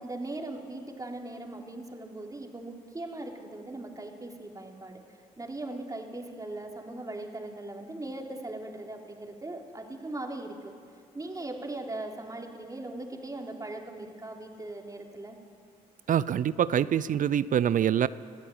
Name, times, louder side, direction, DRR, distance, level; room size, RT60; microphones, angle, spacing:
voice 1, 0.0-5.0 5.4-10.7 11.1-15.4, right 2 dB, 20° right, 1 dB, 3.4 m, -39 dB
voice 2, 16.1-18.1, right 9 dB, 50° right, 18 dB, 0.6 m, -25 dB
21.5 x 14.0 x 8.8 m, 2.3 s
hypercardioid pair, 50°, 18 cm